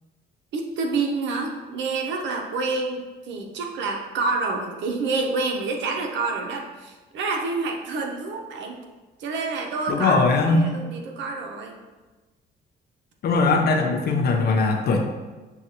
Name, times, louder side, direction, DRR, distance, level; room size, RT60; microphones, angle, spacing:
voice 1, 0.5-3.0 3.3-8.8 9.2-11.8, right 3 dB, 75° right, 2 dB, 0.7 m, -28 dB
voice 2, 9.9-10.7 13.2-15.0, left 3 dB, 60° left, 4 dB, 0.6 m, -20 dB
6.2 x 2.4 x 2.9 m, 1.2 s
cardioid pair, 100°, 19 cm